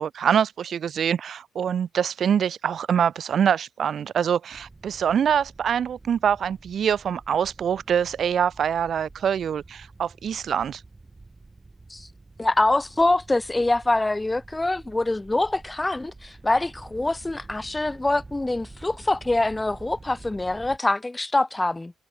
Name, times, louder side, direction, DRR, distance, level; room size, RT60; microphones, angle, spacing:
voice 1, 0.0-10.8, right 8 dB, 55° right, 0.3 m, -24 dB
sound 1, 4.5-20.8, right 3 dB, 20° right, 3.8 m, -48 dB
voice 2, 12.4-21.9, left 2 dB, 15° left, 0.4 m, -24 dB
cardioid pair, 90°, 0 cm